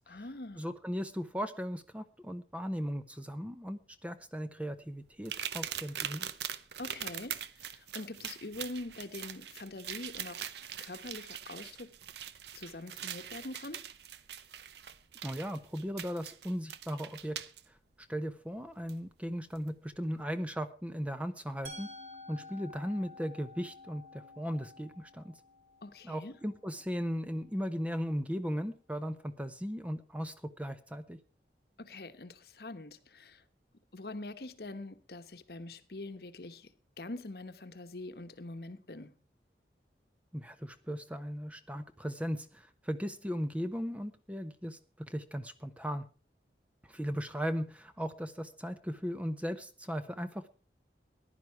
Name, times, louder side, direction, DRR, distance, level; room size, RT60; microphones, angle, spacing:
voice 1, 0.1-0.7 6.8-10.4 10.8-11.9 12.5-13.8 25.8-26.3 31.8-33.4 33.9-39.1, left 2 dB, 60° left, 1.1 m, -44 dB
voice 2, 0.6-6.3 15.2-17.4 17.7-17.8 18.1-21.9 22.3-25.4 26.0-31.2 40.3-46.0 46.8-50.5, equal, 10° right, 0.7 m, -37 dB
sound 1, 5.2-17.6 18.9-19.0 19.5-19.7, right 9 dB, 75° right, 0.8 m, -42 dB
Musical instrument, 21.6-27.5, left 2 dB, 35° right, 2.7 m, -51 dB
15.0 x 11.0 x 4.7 m
head